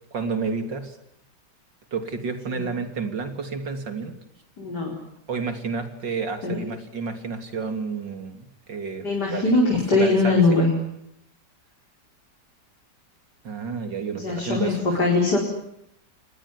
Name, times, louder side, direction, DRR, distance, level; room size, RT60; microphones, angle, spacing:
voice 1, 0.1-1.0 1.9-4.1 5.3-10.7 13.4-15.0, right 5 dB, 85° right, 8 dB, 3.7 m, -31 dB
voice 2, 4.6-5.0 6.4-6.6 9.0-10.7 14.2-15.4, left 3 dB, 65° left, -1 dB, 5.7 m, -21 dB
27.5 x 20.5 x 9.9 m, 0.77 s
omnidirectional pair, 1.9 m